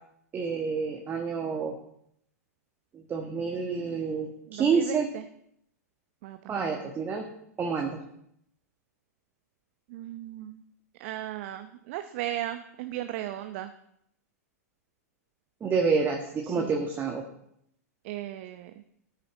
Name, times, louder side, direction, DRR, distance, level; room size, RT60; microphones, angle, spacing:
voice 1, 0.3-1.7 2.9-5.1 6.5-7.2 7.6-8.0 15.6-17.2, right 5 dB, 25° right, 2 dB, 1.5 m, -28 dB
voice 2, 4.5-5.2 6.2-6.9 9.9-10.6 11.0-13.7 16.4-16.9 18.0-18.7, right 13 dB, 50° right, 9 dB, 0.8 m, -36 dB
13.5 x 10.0 x 4.0 m, 0.73 s
figure-of-eight pair, 105°, 9 cm